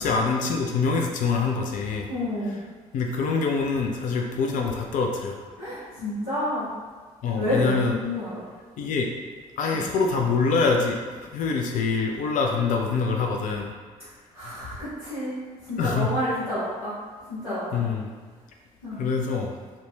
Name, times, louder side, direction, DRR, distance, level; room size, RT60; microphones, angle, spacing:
voice 1, 0.0-2.1 2.9-5.4 7.2-8.0 8.8-9.1 9.6-13.7 15.8-16.1 17.7-18.1 19.0-19.5, left 4 dB, 45° left, 2 dB, 0.4 m, -25 dB
voice 2, 2.1-2.6 5.6-6.7 7.3-8.4 9.7-9.9 14.3-17.0 17.3-17.8 18.8-19.0, left 1 dB, 80° left, -15 dB, 0.8 m, -29 dB
2.4 x 2.1 x 3.3 m, 1.5 s
figure-of-eight pair, 45°, 18 cm